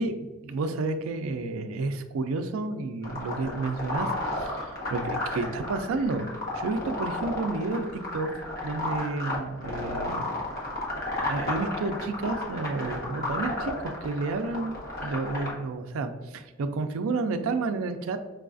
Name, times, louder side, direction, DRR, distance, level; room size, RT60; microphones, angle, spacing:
voice 1, 0.0-6.3 6.5-8.3 8.6-10.2 11.3-18.2, right 3 dB, 75° right, 9 dB, 0.3 m, -31 dB
sound 1, 3.0-15.5, left 2 dB, 45° left, 0.9 m, -33 dB
4.6 x 2.3 x 2.4 m, 1.2 s
head